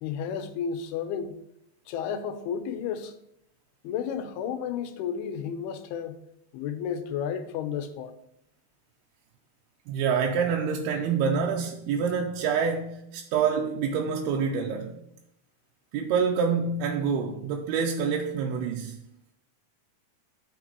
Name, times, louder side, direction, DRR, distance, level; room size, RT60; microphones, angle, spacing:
voice 1, 0.0-1.4 1.9-3.1 3.8-6.2 6.5-8.2, left 7 dB, 80° left, 2.7 m, -32 dB
voice 2, 9.9-15.0 15.9-19.0, right 6 dB, 80° right, 2.6 m, -27 dB
13.0 x 6.1 x 3.0 m
omnidirectional pair, 4.6 m